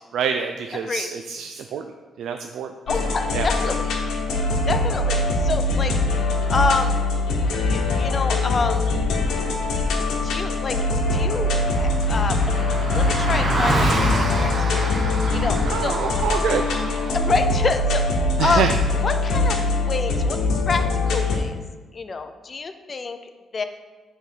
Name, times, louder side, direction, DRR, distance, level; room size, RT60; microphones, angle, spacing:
voice 1, 0.1-1.9 2.2-2.7 3.0-3.7 15.7-16.7 18.4-18.7, right 7 dB, 75° right, 5 dB, 0.3 m, -26 dB
sound 1, 2.9-21.4, left 2 dB, 85° left, 1.0 m, -22 dB
voice 2, 2.9-3.9 4.7-5.9 6.5-6.9 7.7-8.8 10.2-10.8 11.1-12.4 12.9-13.9 14.2-14.9 15.3-16.0 17.1-18.7 19.0-19.6 19.9-20.4 20.7-21.6 21.9-23.6, left 4 dB, 30° left, 8 dB, 0.4 m, -27 dB
Car passing by, 10.3-10.4 10.5-17.4, right 2 dB, 30° right, 0.8 m, -28 dB
7.5 x 3.4 x 4.6 m, 1.4 s
cardioid pair, 155°, 0 cm